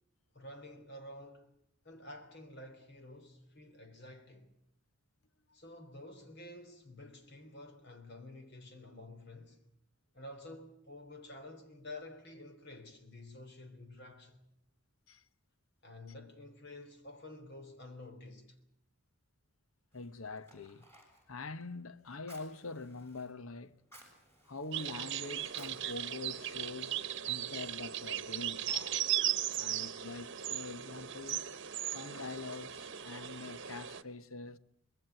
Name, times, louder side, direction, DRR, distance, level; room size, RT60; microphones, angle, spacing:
voice 1, 0.3-1.5 1.8-4.5 5.5-9.6 10.1-14.4 15.8-18.6, left 1 dB, 50° left, 3.4 m, -50 dB
voice 2, 19.9-20.9 21.3-23.8 24.4-29.0 29.6-31.4 31.9-34.6, left 3 dB, 75° left, 1.1 m, -44 dB
Fire, 19.9-27.1, right 1 dB, 10° left, 7.0 m, -62 dB
sound 1, 24.7-34.0, right 11 dB, 55° right, 1.1 m, -37 dB
25.5 x 21.0 x 8.0 m
head